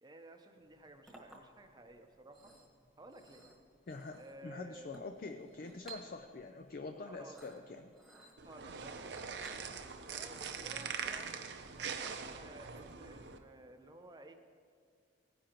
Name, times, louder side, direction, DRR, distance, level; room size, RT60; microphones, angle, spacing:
voice 1, 0.0-2.5 3.0-3.4 4.1-5.0 7.0-7.4 8.2-9.6 10.1-11.3 12.0-14.3, right 2 dB, 25° right, 5 dB, 0.7 m, -55 dB
Chink clink, 0.6-12.7, right 3 dB, ahead, 1.4 m, -59 dB
voice 2, 3.9-7.9, left 3 dB, 50° left, 7 dB, 0.4 m, -45 dB
sound 1, 8.4-13.4, right 6 dB, 70° right, 0.7 m, -43 dB
17.0 x 10.0 x 3.0 m, 2.3 s
head